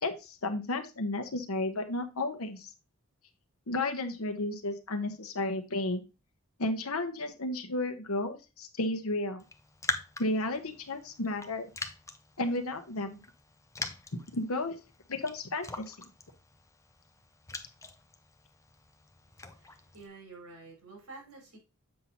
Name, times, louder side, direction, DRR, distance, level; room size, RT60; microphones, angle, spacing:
voice 1, 0.0-2.7 3.7-6.0 6.6-9.4 10.2-11.7 12.4-13.2 14.3-14.8 15.1-16.0, left 2 dB, 70° left, 8 dB, 1.1 m, -33 dB
Raindrop, 9.4-20.1, left 3 dB, 15° left, 0.6 m, -43 dB
voice 2, 19.2-21.6, right 3 dB, 75° right, 0 dB, 4.7 m, -50 dB
7.6 x 5.5 x 2.9 m, 0.29 s
head